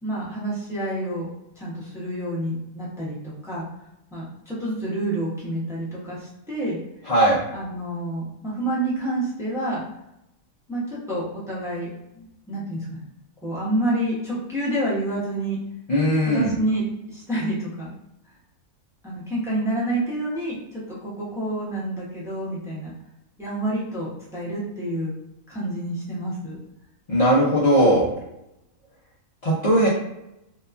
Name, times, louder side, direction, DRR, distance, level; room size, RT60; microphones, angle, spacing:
voice 1, 0.0-1.3 1.6-3.6 4.1-6.8 7.5-9.8 10.7-13.0 13.4-15.6 16.3-17.9 19.0-22.9 23.4-25.1 25.5-26.6, right 1 dB, 5° right, -7 dB, 0.6 m, -28 dB
voice 2, 7.1-7.4 15.9-16.5 27.1-28.1 29.4-29.9, equal, 70° left, -8 dB, 0.3 m, -18 dB
2.9 x 2.2 x 2.4 m, 0.85 s
omnidirectional pair, 1.4 m